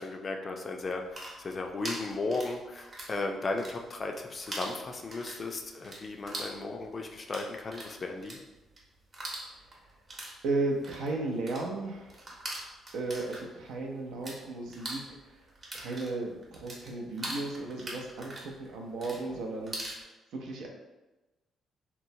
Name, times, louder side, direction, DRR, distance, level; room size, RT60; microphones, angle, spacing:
voice 1, 0.0-8.4, left 3 dB, 35° left, 3 dB, 0.4 m, -35 dB
sound 1, 0.9-3.2 3.5-4.2 4.5-14.4 14.7-20.0, right 1 dB, 35° right, 0.8 m, -42 dB
voice 2, 10.4-12.2 12.9-15.2 15.7-19.8 20.3-20.7, right 2 dB, 80° right, 0 dB, 0.5 m, -34 dB
3.0 x 2.0 x 2.6 m, 1.1 s
cardioid pair, 90°, 0 cm